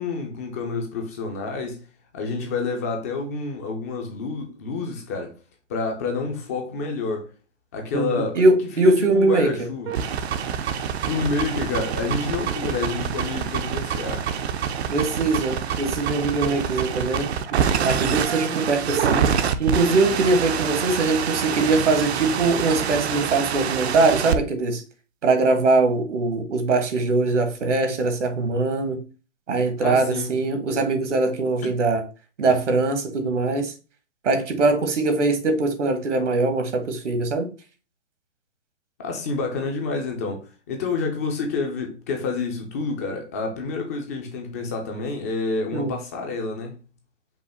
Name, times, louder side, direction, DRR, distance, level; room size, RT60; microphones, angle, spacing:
voice 1, 0.0-1.8 2.1-5.4 5.7-7.3 7.7-8.4 8.8-9.9 11.0-14.3 29.8-30.4 39.0-46.8, left 4 dB, 15° left, 0.4 m, -28 dB
voice 2, 7.9-9.5 14.9-17.3 17.8-24.8 25.2-29.0 29.5-32.0 32.4-33.7 34.2-37.5 45.7-45.9, right 3 dB, 75° right, 1.4 m, -22 dB
sound 1, 9.9-24.4, right 8 dB, 60° right, 0.6 m, -26 dB
5.4 x 2.2 x 4.2 m
hypercardioid pair, 145°, 36 cm